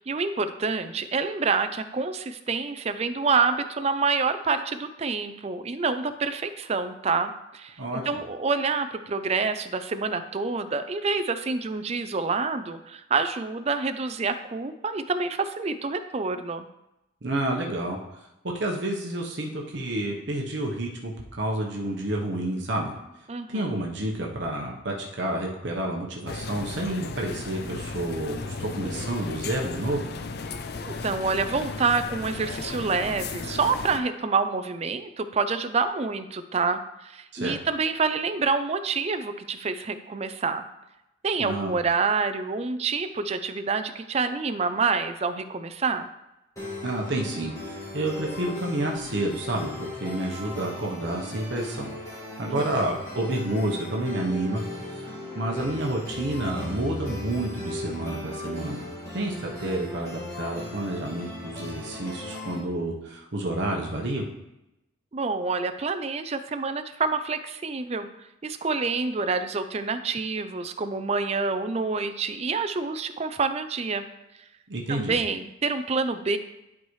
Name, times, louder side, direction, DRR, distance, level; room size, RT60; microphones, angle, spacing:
voice 1, 0.0-7.8 8.1-16.7 23.3-23.8 30.8-40.6 41.2-46.1 52.5-52.6 65.1-68.1 68.4-74.1 74.9-76.4, right 4 dB, 30° right, 9 dB, 0.4 m, -27 dB
voice 2, 17.2-18.0 18.4-22.9 23.5-30.0 37.3-37.6 41.4-41.7 46.8-54.6 54.9-58.8 59.1-64.2 74.7-75.2, right 1 dB, 60° right, -1 dB, 0.9 m, -29 dB
sound 1, 26.3-34.0, left 4 dB, 50° left, 0.5 m, -35 dB
sound 2, 46.6-62.6, left 1 dB, 15° left, 1.9 m, -37 dB
11.0 x 4.7 x 3.2 m, 0.90 s
head